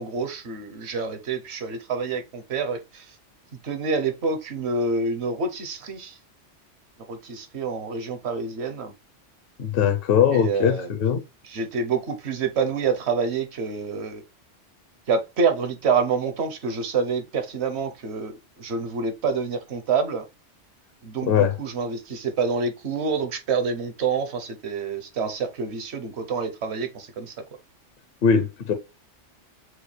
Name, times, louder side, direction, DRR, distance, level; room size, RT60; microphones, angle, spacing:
voice 1, 0.0-3.0 3.6-6.2 7.1-8.9 10.3-10.9 11.5-14.2 15.1-18.3 18.6-20.3 21.0-27.3, right 5 dB, 65° right, 1.1 m, -27 dB
voice 2, 9.6-11.2 21.2-21.6 28.2-28.7, left 7 dB, 60° left, 0.8 m, -20 dB
6.3 x 2.3 x 3.2 m
omnidirectional pair, 1.2 m